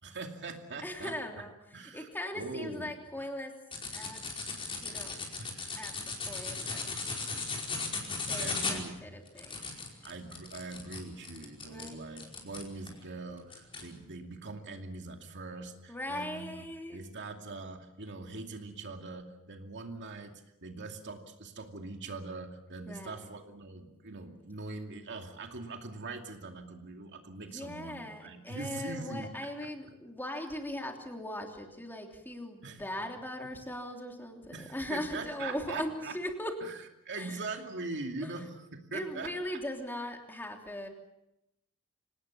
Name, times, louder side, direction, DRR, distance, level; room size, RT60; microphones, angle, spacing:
voice 1, 0.0-1.1 1.7-2.9 3.2-3.3 5.4-5.7 8.4-9.0 10.0-16.7 16.9-29.7 30.4-30.5 32.6-32.8 34.5-36.1 36.6-39.6, right 3 dB, 55° right, 4 dB, 2.5 m, -42 dB
voice 2, 0.8-1.5 1.9-3.5 3.9-4.2 4.8-5.2 5.8-6.9 7.6-7.7 8.3-9.6 11.6-12.0 15.9-17.0 22.9-23.2 27.4-36.5 37.2-37.6 38.2-38.3 38.9-40.9, left 1 dB, 10° left, 2 dB, 3.2 m, -39 dB
sound 1, 3.7-13.0 13.5-13.9, left 4 dB, 25° left, 5.0 m, -37 dB
27.0 x 18.5 x 7.1 m, 0.87 s
head